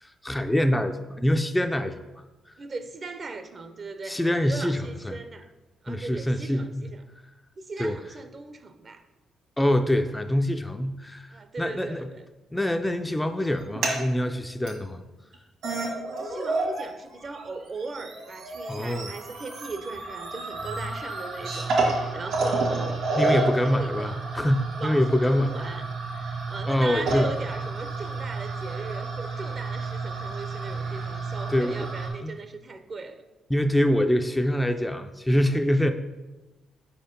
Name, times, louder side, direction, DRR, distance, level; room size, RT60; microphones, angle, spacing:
voice 1, 0.0-2.2 4.0-5.2 5.9-6.8 7.8-8.0 9.6-12.1 12.5-15.0 18.7-19.1 23.2-25.5 26.7-27.3 31.5-31.9 32.2-32.3 33.5-35.9, left 1 dB, 10° left, 6 dB, 0.3 m, -25 dB
voice 2, 2.6-5.5 5.8-7.0 7.6-9.0 11.3-12.2 16.1-24.2 24.8-25.9 26.1-33.2, right 3 dB, 40° right, 9 dB, 0.5 m, -38 dB
sound 1, 13.5-14.0 14.7-14.8 15.3-15.4 15.6-16.9 17.1-32.1, right 3 dB, 75° right, 1.8 m, -30 dB
4.9 x 4.3 x 5.1 m, 1.1 s
cardioid pair, 90°, 0 cm